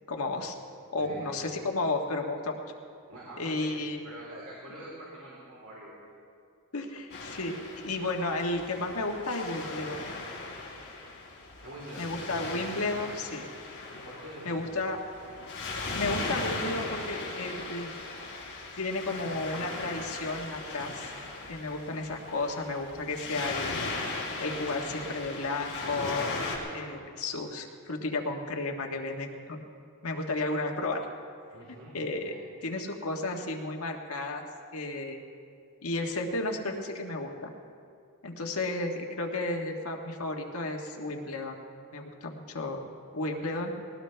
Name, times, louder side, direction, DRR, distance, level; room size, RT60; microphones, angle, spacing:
voice 1, 0.1-0.5 0.9-2.6 3.4-4.0 6.7-7.5 7.8-10.0 12.0-13.5 14.4-15.0 15.9-17.9 18.8-21.1 21.5-23.8 24.4-26.3 26.7-29.6 30.0-31.0 31.9-32.4 32.6-34.4 34.7-35.2 35.8-37.5 38.2-41.6 41.9-42.8 43.1-43.7, left 2 dB, 75° left, 2 dB, 1.5 m, -33 dB
voice 2, 3.1-3.7 4.0-6.0 11.6-12.1 14.0-14.7 31.5-31.9 32.2-32.4, right 1 dB, 80° right, -7 dB, 3.7 m, -45 dB
Waves surf, 7.1-26.6, left 3 dB, 50° left, 3.6 m, -38 dB
21.0 x 18.5 x 3.4 m, 2.3 s
head